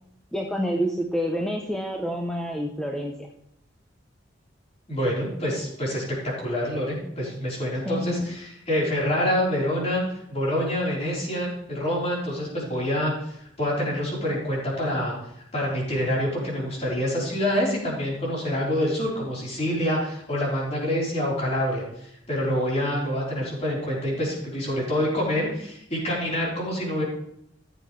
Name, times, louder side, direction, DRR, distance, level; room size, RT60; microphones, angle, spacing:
voice 1, 0.3-3.2 7.9-8.3, equal, 5° left, 1 dB, 0.7 m, -28 dB
voice 2, 4.9-10.0 10.3-15.1 15.5-27.0, equal, 35° left, -5 dB, 4.1 m, -26 dB
14.5 x 7.9 x 3.2 m, 0.75 s
head